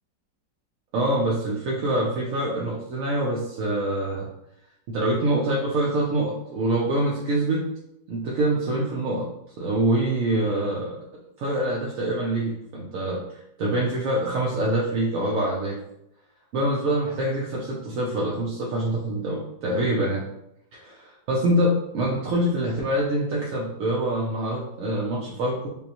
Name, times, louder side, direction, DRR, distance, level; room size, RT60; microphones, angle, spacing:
voice 1, 0.9-4.3 4.9-7.7 8.1-9.3 9.6-10.9 11.4-15.8 16.5-20.2 20.7-20.9 21.3-25.7, right 1 dB, 65° right, -3 dB, 0.8 m, -25 dB
5.2 x 2.1 x 2.9 m, 0.82 s
omnidirectional pair, 1.9 m